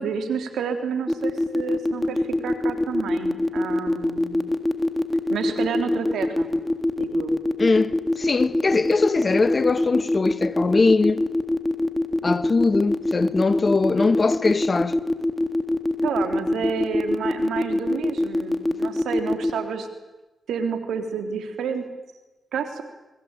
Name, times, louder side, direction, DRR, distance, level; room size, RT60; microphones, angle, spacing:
voice 1, 0.0-4.4 5.3-6.5 7.0-7.3 16.0-19.9 20.5-21.9 22.5-22.8, right 6 dB, 85° right, 3.5 m, -29 dB
sound 1, 1.1-19.5, left 1 dB, 5° left, 3.6 m, -23 dB
voice 2, 7.6-11.2 12.2-15.0, left 3 dB, 45° left, 2.0 m, -21 dB
28.5 x 21.5 x 9.2 m
supercardioid pair, 45°, 0 cm